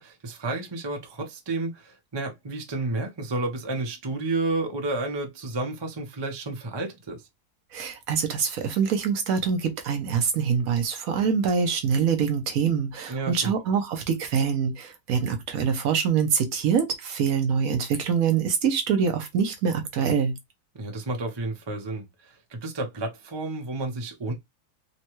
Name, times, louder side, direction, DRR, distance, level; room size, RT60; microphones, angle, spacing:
voice 1, 0.0-7.2 13.1-13.5 20.8-24.3, right 2 dB, 30° right, 0.5 m, -31 dB
voice 2, 7.7-20.3, right 6 dB, 70° right, 1.1 m, -25 dB
3.2 x 2.2 x 3.0 m
omnidirectional pair, 1.6 m